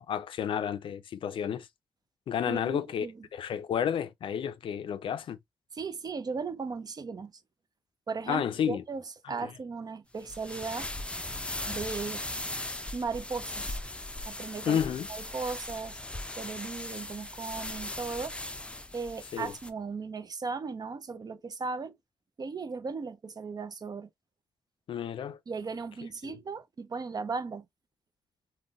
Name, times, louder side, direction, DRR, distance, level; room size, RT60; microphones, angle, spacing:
voice 1, 0.0-1.7 2.3-3.1 3.3-5.4 8.3-8.8 9.2-9.5 14.7-15.1 19.3-19.5 24.9-25.4 26.2-26.3, left 8 dB, 75° left, 0.4 m, -31 dB
voice 2, 2.5-3.3 5.7-7.3 8.1-9.0 9.3-10.9 11.7-12.2 12.9-13.8 14.3-14.8 15.1-16.0 16.3-18.4 18.9-22.0 22.4-24.1 25.5-27.7, right 4 dB, 50° right, 0.5 m, -36 dB
sound 1, 10.2-19.7, left 1 dB, 10° left, 0.5 m, -38 dB
3.7 x 2.2 x 2.3 m
cardioid pair, 50°, 9 cm